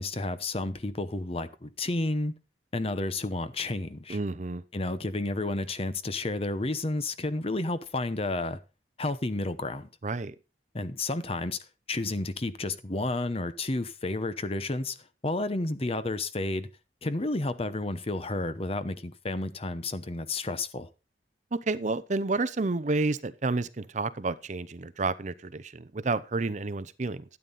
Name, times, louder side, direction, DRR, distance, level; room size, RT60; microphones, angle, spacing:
voice 1, 0.0-2.3 2.7-4.2 4.7-8.6 9.0-9.9 10.7-11.6 11.9-15.0 15.2-16.7 17.0-20.9, left 2 dB, 35° left, 0.9 m, -31 dB
voice 2, 4.1-4.6 10.0-10.3 21.5-27.2, right 3 dB, 40° right, 0.6 m, -30 dB
12.5 x 9.2 x 4.1 m
head